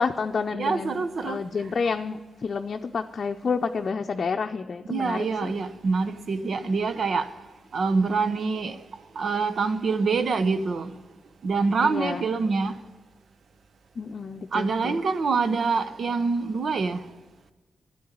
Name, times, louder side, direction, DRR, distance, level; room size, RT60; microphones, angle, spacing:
voice 1, 0.0-5.5 6.4-6.8 11.8-12.3 14.0-15.0, left 5 dB, 55° left, 0.6 m, -29 dB
voice 2, 0.5-1.4 4.9-7.3 7.7-8.8 9.1-10.9 11.4-12.7 14.5-17.0, right 4 dB, 65° right, 0.8 m, -25 dB
10.5 x 8.6 x 8.6 m
cardioid pair, 55°, 0 cm